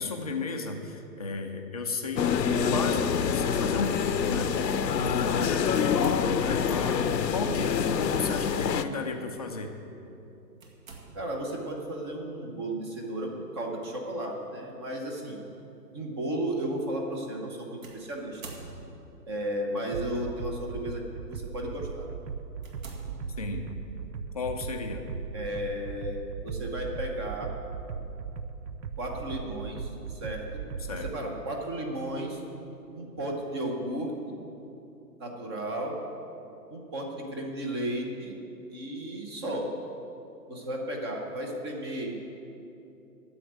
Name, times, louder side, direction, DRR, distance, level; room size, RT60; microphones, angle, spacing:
voice 1, 0.0-9.7 23.4-23.7 24.3-25.0 30.9-31.1, left 3 dB, 25° left, 2 dB, 0.5 m, -34 dB
sound 1, 2.2-8.8, left 7 dB, 80° left, 0.8 m, -26 dB
voice 2, 5.7-6.1 11.1-15.4 15.9-18.4 19.3-21.0 21.3-22.1 25.3-26.2 26.4-27.5 29.0-30.5 30.9-32.4 32.9-34.4 35.2-36.0 36.7-38.3 38.7-39.7 40.5-42.1, right 1 dB, 15° right, 1 dB, 0.8 m, -34 dB
sound 2, 5.8-6.8 8.0-8.4 8.9-9.0 10.6-11.5 13.6-13.9 14.7-14.8 17.8-19.2 20.1-20.6 21.2-21.4 21.9-22.0 22.6-23.8, right 3 dB, 55° right, 2.2 m, -46 dB
sound 3, 19.9-31.2, right 6 dB, 90° right, 0.8 m, -38 dB
9.9 x 7.8 x 9.4 m, 2.9 s
hypercardioid pair, 155°, 50 cm